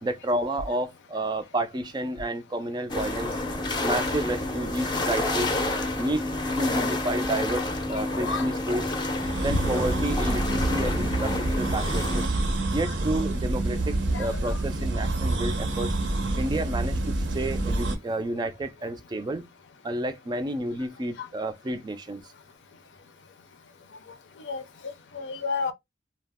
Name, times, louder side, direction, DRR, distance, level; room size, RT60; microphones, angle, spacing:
voice 1, 0.0-3.4 3.8-5.5 6.0-6.2 6.6-8.8 9.4-12.3 12.7-16.0 16.4-17.0 17.3-19.5 19.8-22.2, right 1 dB, 25° right, 0.3 m, -30 dB
sound 1, 2.9-12.3, left 2 dB, 25° left, 0.5 m, -29 dB
voice 2, 7.9-8.5 9.5-9.6 14.1-14.6 21.2-21.3 24.5-24.6 25.1-25.7, left 4 dB, 75° left, 0.5 m, -32 dB
sound 2, 9.1-18.0, right 2 dB, 80° right, 0.7 m, -27 dB
2.3 x 2.0 x 3.4 m
head